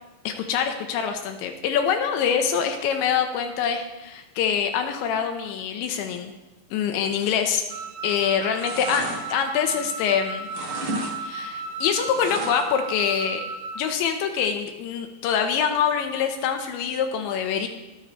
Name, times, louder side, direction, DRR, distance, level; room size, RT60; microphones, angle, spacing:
voice 1, 0.2-6.3 6.7-7.6 8.0-10.5 11.2-13.4 13.8-17.7, left 7 dB, 85° left, 5 dB, 3.2 m, -25 dB
Wind instrument woodwind instrument, 7.7-13.9, right 3 dB, 75° right, 2.7 m, -35 dB
sound 1, 7.7-8.1 8.4-10.1 10.4-11.2 11.4-12.8 13.2-13.3, right 2 dB, 90° right, 1.1 m, -33 dB
22.5 x 9.9 x 3.2 m, 1.0 s
omnidirectional pair, 5.3 m